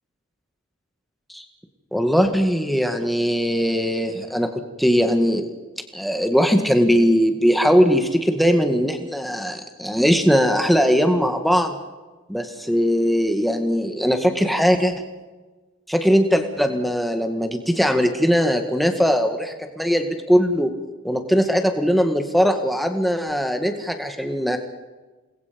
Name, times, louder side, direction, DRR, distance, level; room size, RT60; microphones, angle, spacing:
voice 1, 1.9-4.5 4.8-5.5 5.9-11.8 12.3-15.0 15.9-20.7 21.0-24.6, equal, ahead, 5 dB, 1.9 m, -20 dB
29.0 x 21.0 x 5.3 m, 1.3 s
head